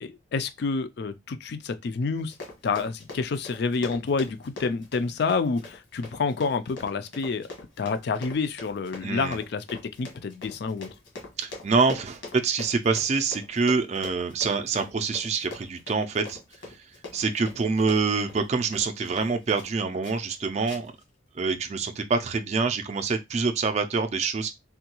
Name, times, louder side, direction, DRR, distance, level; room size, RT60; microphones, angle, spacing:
voice 1, 0.0-2.3 2.6-7.5 7.8-10.9, left 4 dB, 60° left, 0.4 m, -28 dB
Run, 2.2-19.7 20.0-20.4 20.7-21.0 21.4-21.5, left 3 dB, 75° left, 1.3 m, -43 dB
voice 2, 9.0-9.4 11.4-16.4 17.1-20.9 21.4-24.5, right 4 dB, 35° right, 0.4 m, -26 dB
3.5 x 2.3 x 2.9 m
head